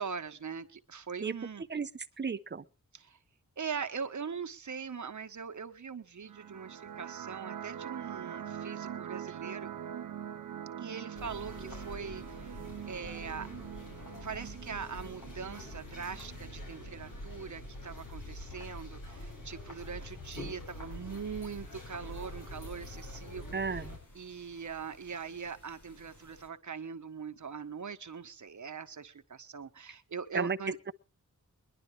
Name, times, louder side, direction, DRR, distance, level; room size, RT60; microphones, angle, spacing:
voice 1, 0.0-1.6 2.9-3.2 3.6-9.7 10.8-12.6 12.8-13.5 14.2-23.9 24.1-30.8, right 6 dB, 65° right, 1.2 m, -41 dB
voice 2, 2.2-2.6 23.5-24.0 30.3-30.6, right 5 dB, 35° right, 0.8 m, -33 dB
sound 1, 6.2-17.2, right 9 dB, 85° right, 0.6 m, -44 dB
sound 2, 11.2-24.0, left 1 dB, 85° left, 6.2 m, -45 dB
sound 3, 20.1-26.5, left 1 dB, 70° left, 5.8 m, -61 dB
22.0 x 11.0 x 3.3 m
wide cardioid pair, 100°, 31 cm